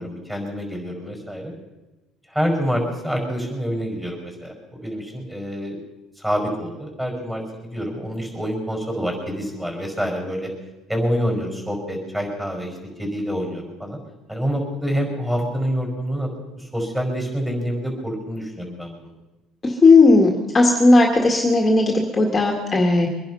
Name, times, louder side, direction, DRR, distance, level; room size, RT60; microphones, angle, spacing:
voice 1, 0.0-1.5 2.3-5.8 6.2-10.5 10.9-14.0 14.3-16.3 16.6-19.1, equal, 10° right, 2 dB, 5.2 m, -27 dB
voice 2, 19.6-23.1, left 3 dB, 20° left, 1 dB, 1.9 m, -15 dB
24.0 x 10.5 x 5.6 m, 1.1 s
cardioid pair, 125°, 0 cm